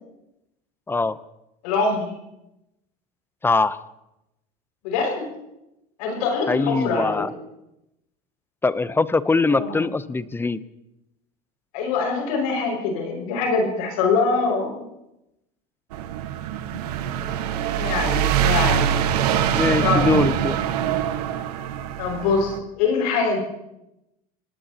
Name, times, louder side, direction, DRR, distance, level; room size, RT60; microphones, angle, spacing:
voice 1, 0.9-1.2 3.4-3.8 6.5-7.3 8.6-10.6 19.5-20.6, left 3 dB, 10° left, 15 dB, 0.6 m, -22 dB
voice 2, 1.6-2.1 4.8-5.3 6.0-7.2 9.5-9.8 11.7-14.9 17.8-18.9 19.8-20.1 22.0-23.4, left 4 dB, 85° left, 1 dB, 5.6 m, -23 dB
sound 1, 15.9-22.6, right 10 dB, 90° right, 1.3 m, -24 dB
27.0 x 18.5 x 2.9 m, 0.89 s
supercardioid pair, 110°, 20 cm